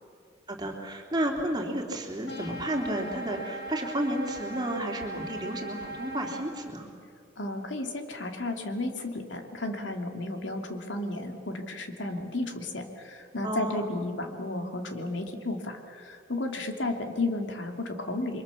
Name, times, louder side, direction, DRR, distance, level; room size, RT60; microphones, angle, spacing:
voice 1, 0.5-6.9 13.4-13.8, right 1 dB, 20° right, 1 dB, 3.1 m, -32 dB
sound 1, 2.3-6.4, right 2 dB, 60° left, 5.3 m, -39 dB
voice 2, 7.4-18.4, left 2 dB, 85° left, 4 dB, 2.6 m, -33 dB
29.5 x 23.5 x 7.1 m, 2.2 s
head